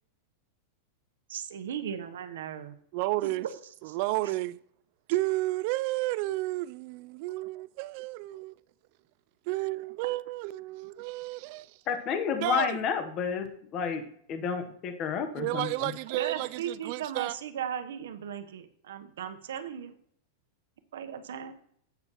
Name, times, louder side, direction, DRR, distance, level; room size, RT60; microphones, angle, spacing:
voice 1, 1.3-2.8 3.2-3.3 3.9-4.0 16.1-19.9 20.9-21.5, right 9 dB, 85° right, 0.9 m, -37 dB
voice 2, 2.9-3.5 3.8-4.6 5.1-8.5 9.5-11.7 12.4-12.8 15.4-17.3, right 19 dB, 50° right, 0.3 m, -31 dB
voice 3, 11.9-13.5 13.7-14.0 14.3-15.9, left 7 dB, 35° left, 1.0 m, -30 dB
9.8 x 8.1 x 3.0 m
supercardioid pair, 145°, 0 cm